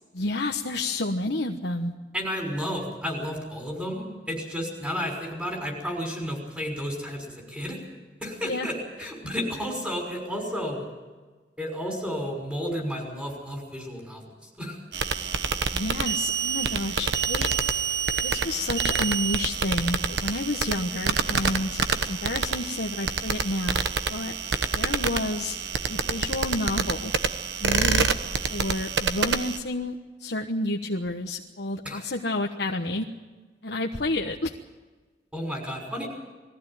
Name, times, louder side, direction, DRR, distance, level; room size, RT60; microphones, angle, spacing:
voice 1, 0.1-1.9 8.4-8.7 15.7-17.5 18.2-23.8 24.1-25.6 25.9-27.1 27.6-28.1 28.5-33.1 33.6-34.5, left 2 dB, 70° left, 2 dB, 1.2 m, -30 dB
voice 2, 2.1-7.8 8.2-10.9 11.6-14.8 31.8-32.0 35.3-36.1, equal, 10° right, 2 dB, 5.8 m, -32 dB
sound 1, 14.9-29.6, right 5 dB, 75° right, 1.2 m, -27 dB
21.0 x 15.0 x 9.2 m, 1.3 s
head